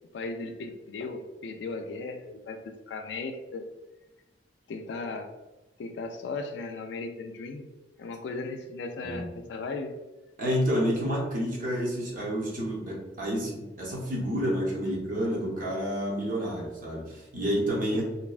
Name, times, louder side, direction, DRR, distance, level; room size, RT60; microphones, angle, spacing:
voice 1, 0.0-3.6 4.7-5.3 5.8-7.7 8.0-9.9 17.9-18.0, left 3 dB, 65° left, 6 dB, 0.3 m, -36 dB
voice 2, 10.4-18.0, equal, 45° right, -4 dB, 0.8 m, -29 dB
2.7 x 2.2 x 2.3 m, 1.1 s
head